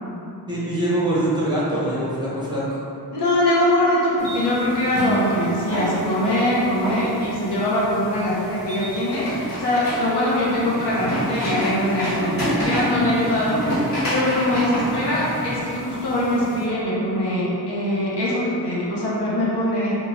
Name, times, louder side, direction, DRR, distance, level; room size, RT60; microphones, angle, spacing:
voice 1, 0.5-2.8, right 1 dB, 10° right, -9 dB, 0.8 m, -23 dB
voice 2, 3.1-13.6 14.0-20.0, left 1 dB, 85° left, -7 dB, 0.8 m, -22 dB
sound 1, 4.2-16.6, equal, 60° left, 1.4 m, -29 dB
Acoustic guitar / Strum, 4.9-8.2, right 4 dB, 40° right, 0.4 m, -31 dB
3.0 x 2.3 x 2.6 m, 2.7 s
cardioid pair, 70°, 40 cm